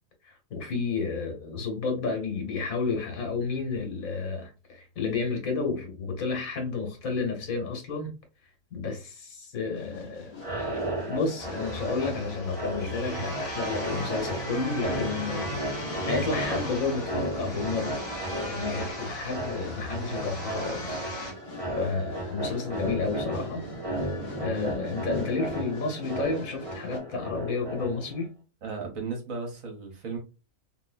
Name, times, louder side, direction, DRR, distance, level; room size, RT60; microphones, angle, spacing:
voice 1, 0.2-8.1 8.7-10.4 11.1-15.6 16.0-18.0 18.4-21.0 21.7-23.6 24.4-28.3, left 4 dB, 70° left, 1.5 m, -31 dB
sound 1, 9.7-27.0, left 4 dB, 45° left, 0.9 m, -47 dB
sound 2, 10.3-28.2, right 1 dB, 25° right, 1.0 m, -35 dB
sound 3, 11.4-21.3, equal, 20° left, 1.4 m, -37 dB
voice 2, 28.6-30.2, right 4 dB, 65° right, 1.4 m, -35 dB
3.0 x 2.8 x 2.4 m
omnidirectional pair, 1.6 m